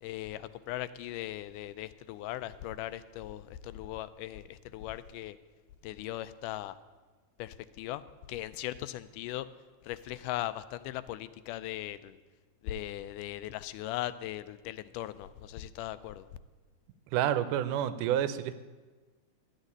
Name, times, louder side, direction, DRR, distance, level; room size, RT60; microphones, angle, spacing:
voice 1, 0.0-5.4 5.8-6.8 7.4-8.0 8.3-9.5 9.8-12.2 12.6-16.3, left 14 dB, 85° left, 14 dB, 2.1 m, -39 dB
voice 2, 17.1-18.5, right 11 dB, 85° right, 13 dB, 2.2 m, -29 dB
13.0 x 6.5 x 9.6 m, 1.3 s
omnidirectional pair, 3.7 m